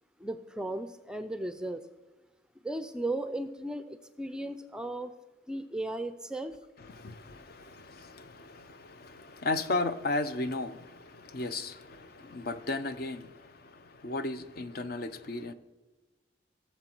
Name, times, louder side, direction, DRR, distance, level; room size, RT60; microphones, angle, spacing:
voice 1, 0.2-1.8 2.6-5.1 5.5-6.5, right 1 dB, 5° right, 10 dB, 0.4 m, -36 dB
voice 2, 6.8-15.5, left 2 dB, 50° left, 11 dB, 0.6 m, -35 dB
16.5 x 7.0 x 4.5 m, 1.2 s
head